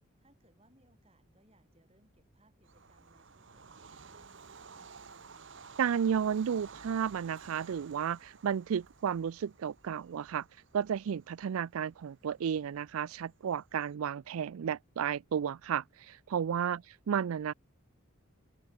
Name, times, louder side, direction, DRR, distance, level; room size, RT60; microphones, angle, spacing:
voice 1, 0.2-5.0 16.7-16.9, right 1 dB, 25° right, 5.2 m, -68 dB
Bird vocalization bird call bird song / Train, 2.6-13.8, right 5 dB, 55° right, 1.0 m, -54 dB
voice 2, 5.8-10.5 10.7-16.8 17.1-17.5, right 8 dB, 80° right, 0.4 m, -32 dB
head